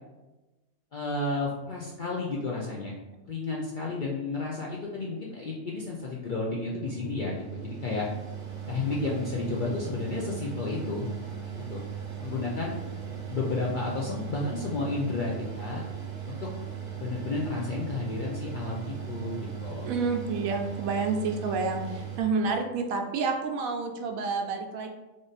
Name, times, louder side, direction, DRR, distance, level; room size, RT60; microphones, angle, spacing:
voice 1, 0.9-2.9 3.2-8.1 8.7-11.1 11.7-11.8 12.2-12.8 13.1-15.8 16.3-16.5 17.0-19.9, left 3 dB, 65° left, -3 dB, 0.5 m, -32 dB
Mechanical fan, 6.8-22.2, right 8 dB, 50° right, 0.6 m, -38 dB
voice 2, 19.8-24.9, right 4 dB, 90° right, 4 dB, 1.1 m, -29 dB
3.6 x 2.5 x 3.9 m, 1.1 s
omnidirectional pair, 1.4 m